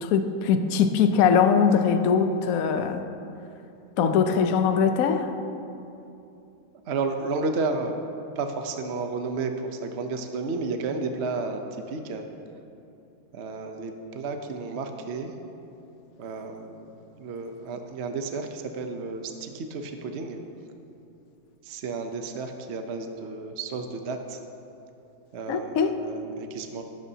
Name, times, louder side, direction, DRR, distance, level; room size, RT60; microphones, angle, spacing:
voice 1, 0.0-3.1 4.0-5.3 25.5-26.0, left 6 dB, 60° left, 7 dB, 0.9 m, -22 dB
voice 2, 6.9-7.9 8.3-11.6 11.9-12.3 13.3-15.3 16.2-16.9 17.2-20.4 21.6-24.4 25.3-26.8, right 3 dB, 60° right, 5 dB, 0.7 m, -32 dB
16.5 x 13.0 x 2.8 m, 2.7 s
omnidirectional pair, 2.0 m